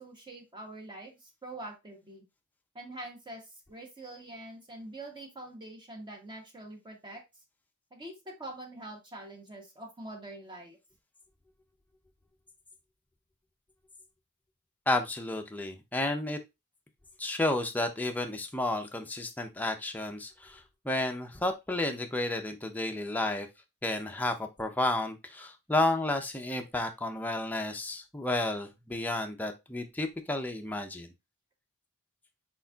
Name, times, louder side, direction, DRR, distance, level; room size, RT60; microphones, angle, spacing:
voice 1, 0.0-2.2 2.7-7.2 7.9-10.8, right 1 dB, 20° right, 2 dB, 0.9 m, -45 dB
voice 2, 14.9-16.4 17.2-23.5 23.8-31.1, left 2 dB, 10° left, 4 dB, 0.5 m, -31 dB
4.3 x 4.1 x 2.3 m, 0.22 s
head